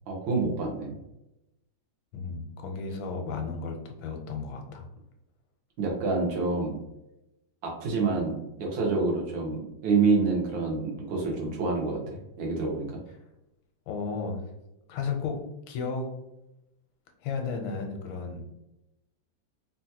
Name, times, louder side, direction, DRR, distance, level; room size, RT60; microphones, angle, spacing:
voice 1, 0.1-1.0 5.8-6.7 7.6-13.0, right 4 dB, 85° right, -1 dB, 1.6 m, -27 dB
voice 2, 2.1-4.9 13.9-14.5 14.9-16.2 17.2-18.4, left 4 dB, 85° left, 4 dB, 1.4 m, -34 dB
3.8 x 2.3 x 2.7 m, 0.89 s
omnidirectional pair, 2.1 m